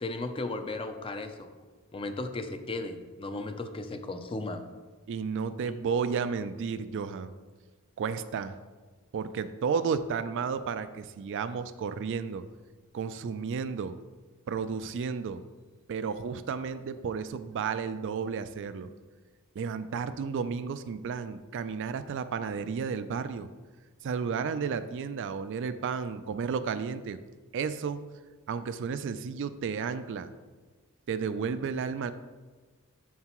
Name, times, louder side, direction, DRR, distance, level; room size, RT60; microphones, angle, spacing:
voice 1, 0.0-1.5 1.9-4.7, left 2 dB, 25° left, 7 dB, 0.4 m, -35 dB
voice 2, 5.1-7.3 8.0-8.6 9.1-12.4 12.9-14.0 14.5-15.4 15.9-18.9 19.6-23.5 24.0-27.2 27.5-28.0 28.5-30.3 31.1-32.1, right 6 dB, 55° right, 12 dB, 0.3 m, -32 dB
7.2 x 6.6 x 3.0 m, 1.4 s
head